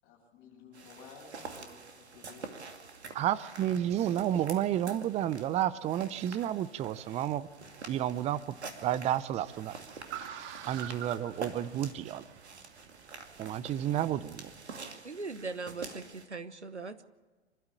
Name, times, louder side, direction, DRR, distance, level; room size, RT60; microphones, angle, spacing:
voice 1, 0.0-2.7, left 4 dB, 35° left, -1 dB, 7.5 m, -54 dB
sound 1, 0.7-16.3, right 4 dB, 75° right, 2.5 m, -47 dB
voice 2, 3.1-7.5 7.9-8.5 8.8-9.8 10.7-12.2 13.4-14.5, right 11 dB, 20° right, 17 dB, 0.6 m, -31 dB
Car, 7.3-14.7, right 10 dB, 35° right, 2.0 m, -48 dB
voice 3, 15.0-17.0, right 4 dB, 90° right, 11 dB, 1.3 m, -40 dB
26.5 x 12.5 x 8.7 m, 1.3 s
figure-of-eight pair, 100°, 33 cm